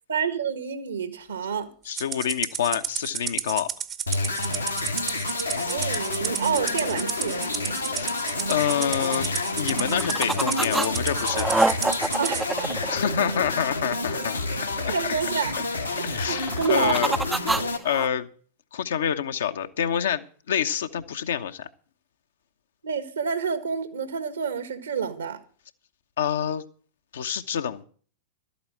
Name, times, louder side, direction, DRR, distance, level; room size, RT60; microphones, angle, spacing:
voice 1, 0.1-1.7 5.4-7.4 12.2-12.7 14.9-15.6 16.3-17.2 22.8-25.4, right 6 dB, 70° right, 1.6 m, -28 dB
voice 2, 1.8-3.7 7.9-8.1 8.5-9.3 9.6-11.5 12.9-14.4 14.9-15.0 16.0-17.1 17.8-18.3 18.7-21.7 26.2-26.6 27.1-27.8, left 8 dB, 65° left, 1.0 m, -27 dB
Rattle (instrument), 2.0-12.4, right 8 dB, 25° right, 0.9 m, -32 dB
sound 1, 4.1-17.8, left 2 dB, 85° left, 2.0 m, -29 dB
sound 2, 9.7-10.9 11.1-13.6 16.3-18.1, right 2 dB, 10° right, 0.5 m, -26 dB
12.5 x 8.6 x 7.4 m
figure-of-eight pair, 90°, 0 cm